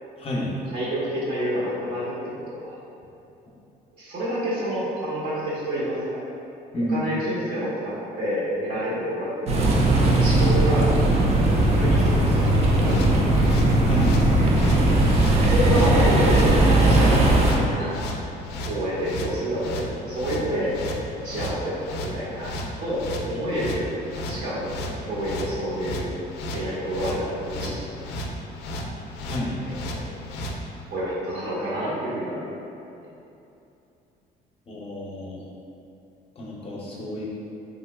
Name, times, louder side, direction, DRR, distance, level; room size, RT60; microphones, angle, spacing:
voice 1, 0.2-0.6 6.7-7.1 13.8-14.2 29.2-29.6 34.7-35.4 36.4-37.2, left 1 dB, 35° left, -4 dB, 0.6 m, -30 dB
voice 2, 0.7-2.1 2.5-2.8 4.0-6.2 6.9-10.9 11.5-13.3 15.3-17.9 18.6-20.7 21.2-22.5 22.8-23.8 24.1-24.8 25.0-26.0 26.5-28.4 28.7-28.9 29.9-30.0 30.9-32.4, equal, 85° right, -9 dB, 1.2 m, -28 dB
sound 1, 9.5-17.5, right 1 dB, 40° right, 0.5 m, -18 dB
sound 2, 12.8-30.6, left 1 dB, 80° left, 0.4 m, -34 dB
3.5 x 2.8 x 2.3 m, 2.8 s
cardioid pair, 110°, 17 cm